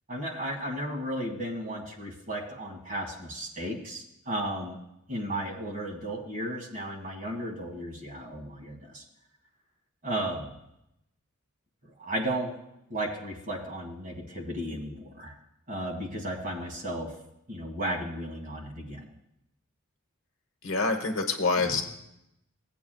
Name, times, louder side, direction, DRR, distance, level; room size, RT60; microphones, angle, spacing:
voice 1, 0.1-4.8 5.1-9.0 10.0-10.5 11.8-12.6 12.9-15.3 15.7-17.1 17.5-19.1 21.6-21.8, right 1 dB, 35° right, 0 dB, 1.9 m, -34 dB
voice 2, 20.6-21.8, left 3 dB, 60° left, 4 dB, 1.1 m, -26 dB
17.0 x 8.4 x 2.3 m, 0.83 s
head